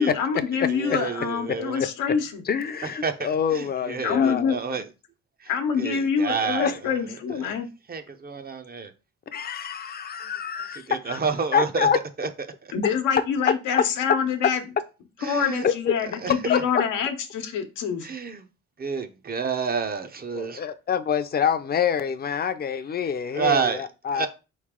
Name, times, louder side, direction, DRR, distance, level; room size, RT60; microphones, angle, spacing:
voice 1, 0.0-2.4 4.0-4.6 5.5-7.7 12.7-14.6 15.2-18.1, left 7 dB, 90° left, 0.9 m, -26 dB
voice 2, 0.7-1.8 2.8-4.9 5.8-6.9 7.4-7.5 7.9-8.9 10.9-11.9 12.2-12.3 15.2-15.6 16.2-16.3 18.0-18.4 18.8-20.6 23.3-23.8 24.1-24.3, right 6 dB, 30° right, 0.6 m, -29 dB
voice 3, 2.5-4.6 6.6-6.8 7.3-7.4 9.3-11.2 11.5-12.0 13.5-13.6 14.1-14.2 15.6-15.9 16.5-16.8 20.3-24.3, left 7 dB, 35° left, 0.5 m, -26 dB
4.1 x 3.2 x 3.6 m
cardioid pair, 90°, 30 cm